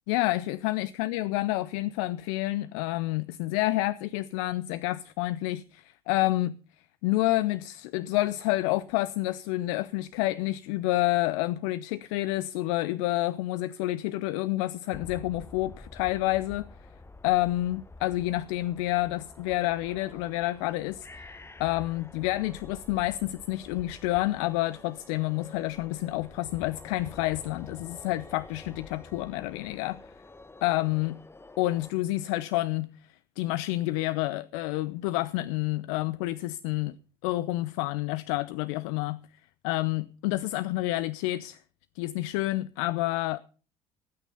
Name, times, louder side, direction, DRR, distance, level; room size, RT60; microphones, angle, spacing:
voice 1, 0.1-16.7 17.2-30.1 30.6-31.2 31.6-37.0 37.2-39.2 39.6-41.6 42.0-43.4, left 17 dB, 60° left, 0.6 m, -29 dB
sound 1, 14.9-31.9, left 2 dB, 15° left, 1.1 m, -48 dB
18.0 x 9.1 x 5.4 m
figure-of-eight pair, 55°, 19 cm